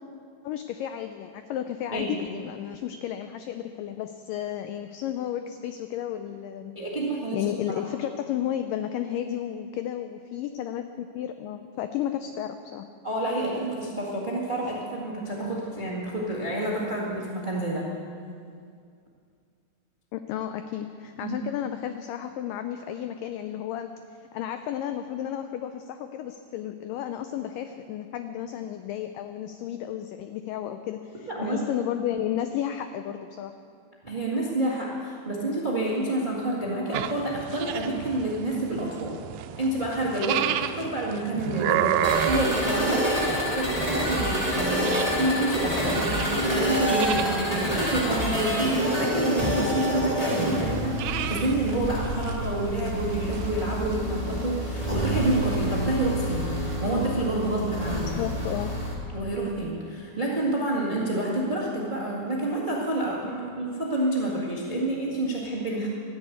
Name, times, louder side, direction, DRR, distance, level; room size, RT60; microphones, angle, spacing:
voice 1, 0.4-6.7 7.3-12.9 20.1-23.9 24.2-33.5 57.9-58.7, left 11 dB, 90° left, 8 dB, 1.9 m, -33 dB
voice 2, 6.7-7.5 13.0-17.8 21.2-21.3 31.3-31.6 34.0-39.2 39.6-44.9 45.2-51.0 51.3-58.1 59.1-65.9, right 1 dB, 65° right, -4 dB, 0.4 m, -28 dB
sound 1, 36.9-55.9, right 10 dB, 80° right, 2.2 m, -34 dB
sound 2, 42.0-58.9, equal, 15° left, 1.4 m, -27 dB
13.0 x 10.0 x 8.4 m, 2.3 s
omnidirectional pair, 4.5 m